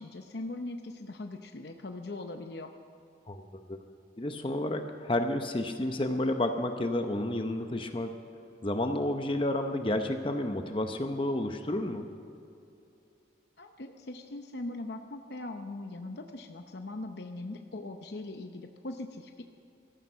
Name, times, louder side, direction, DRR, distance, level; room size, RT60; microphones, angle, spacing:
voice 1, 0.0-2.7 13.6-19.4, left 2 dB, 65° left, 5 dB, 0.8 m, -40 dB
voice 2, 4.2-8.1 8.6-12.1, left 1 dB, 30° left, 6 dB, 0.8 m, -30 dB
17.5 x 14.0 x 5.7 m, 2.7 s
head